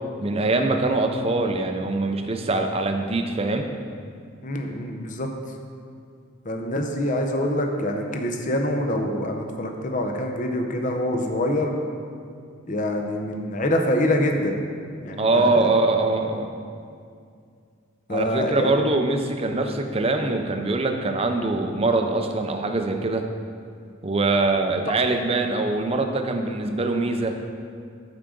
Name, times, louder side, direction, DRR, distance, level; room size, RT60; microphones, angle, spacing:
voice 1, 0.2-3.7 15.2-16.5 18.1-23.2 24.0-27.4, right 2 dB, 30° right, 5 dB, 0.5 m, -23 dB
voice 2, 4.4-5.3 6.5-11.8 12.7-14.6 15.0-15.7 18.1-18.8, left 1 dB, 40° left, 3 dB, 0.7 m, -25 dB
13.0 x 4.9 x 3.8 m, 2.3 s
head